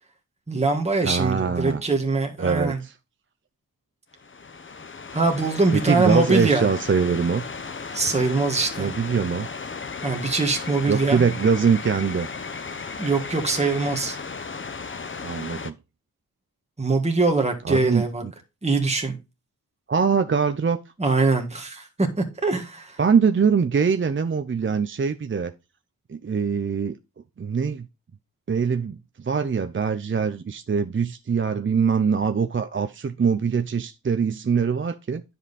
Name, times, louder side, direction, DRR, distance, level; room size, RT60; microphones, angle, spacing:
voice 1, 0.5-2.8 5.1-6.7 7.9-8.9 10.0-11.2 13.0-14.2 16.8-18.2 18.6-19.2 21.0-23.0, right 3 dB, 20° right, 1.6 m, -23 dB
voice 2, 1.0-1.8 2.4-2.9 5.7-7.4 8.8-9.5 10.9-12.3 15.2-15.8 17.6-18.3 19.9-20.8 23.0-25.5 26.1-27.0 27.4-27.9 28.5-35.2, right 6 dB, 35° right, 0.5 m, -23 dB
sound 1, 4.2-15.7, left 4 dB, 35° left, 0.8 m, -35 dB
10.0 x 5.4 x 4.1 m
wide cardioid pair, 110°, 35 cm